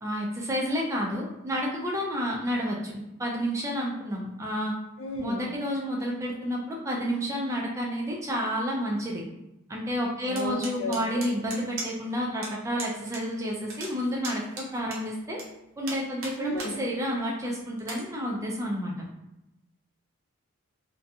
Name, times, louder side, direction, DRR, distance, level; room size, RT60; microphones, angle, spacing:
voice 1, 0.0-4.7 5.2-9.2 9.7-15.4 15.8-18.9, equal, 15° right, -2 dB, 0.3 m, -30 dB
voice 2, 5.0-5.5 10.3-11.3 16.4-16.8, left 1 dB, 60° left, 1 dB, 0.5 m, -33 dB
sound 1, 10.4-12.1 12.4-12.5 12.8-13.2 13.5-15.4 15.8-16.7 17.2-17.3 17.8-18.0, right 2 dB, 65° right, 0.7 m, -37 dB
2.6 x 2.2 x 2.6 m, 0.91 s
head